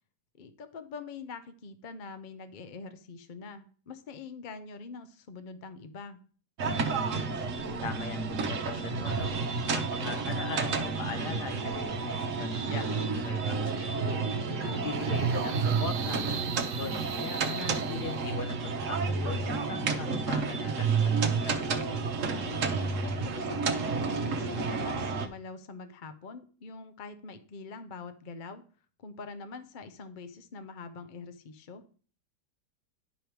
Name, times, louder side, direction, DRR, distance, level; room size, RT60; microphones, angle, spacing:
voice 1, 0.4-6.2 14.5-15.0 22.4-28.6 29.0-31.8, left 4 dB, 50° left, 9 dB, 0.5 m, -44 dB
sound 1, 6.6-25.3, right 4 dB, 55° right, 1.2 m, -30 dB
voice 2, 7.8-9.3 9.7-14.3 14.7-21.6, left 4 dB, 75° left, 6 dB, 1.7 m, -40 dB
sound 2, 12.7-18.7, right 10 dB, 80° right, 1.1 m, -43 dB
10.5 x 5.1 x 4.6 m, 0.40 s
omnidirectional pair, 1.8 m